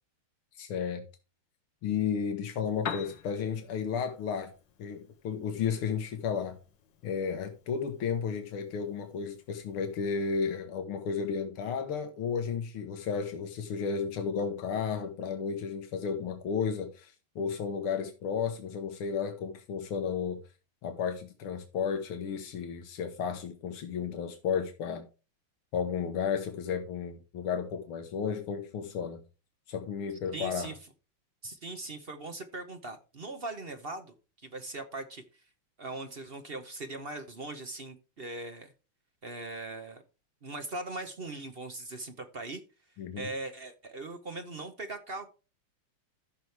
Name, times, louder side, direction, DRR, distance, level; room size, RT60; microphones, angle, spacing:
voice 1, 0.6-1.0 1.8-4.5 4.8-6.6 7.0-20.4 20.8-25.1 25.7-29.2 29.7-30.7 43.0-43.3, left 6 dB, 85° left, 2.1 m, -33 dB
Piano, 2.6-10.6, left 7 dB, 60° left, 1.8 m, -47 dB
voice 2, 30.3-30.8 31.4-34.1 34.4-35.2 35.8-38.7 39.2-40.0 40.4-42.6 43.2-45.3, right 2 dB, 40° right, 0.9 m, -40 dB
14.0 x 6.2 x 3.4 m
omnidirectional pair, 2.3 m